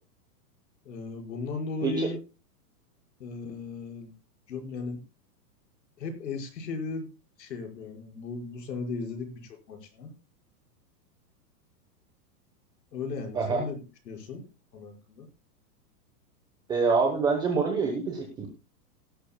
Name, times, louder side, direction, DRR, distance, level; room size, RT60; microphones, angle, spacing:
voice 1, 0.9-2.2 3.2-4.1 4.5-5.0 6.0-7.1 7.4-10.1 12.9-13.8 14.1-15.3, left 4 dB, 85° left, 4 dB, 5.7 m, -36 dB
voice 2, 16.7-18.5, right 4 dB, 10° right, 3 dB, 1.0 m, -26 dB
17.0 x 12.0 x 2.3 m, 0.30 s
supercardioid pair, 175°, 49 cm